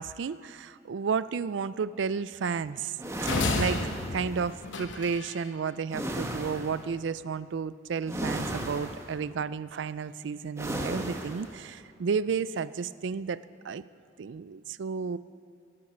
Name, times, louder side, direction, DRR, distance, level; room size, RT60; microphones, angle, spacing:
voice 1, 0.0-3.0 3.5-3.8 4.1-13.4 13.6-13.8 14.2-15.2, right 5 dB, 70° right, 16 dB, 0.4 m, -32 dB
sound 1, 3.0-4.6 5.9-6.8 8.1-9.2 10.6-11.5, right 1 dB, 15° right, 1.1 m, -34 dB
sound 2, 3.2-5.5, left 3 dB, 80° left, 1.0 m, -31 dB
18.5 x 9.7 x 5.4 m, 2.3 s
head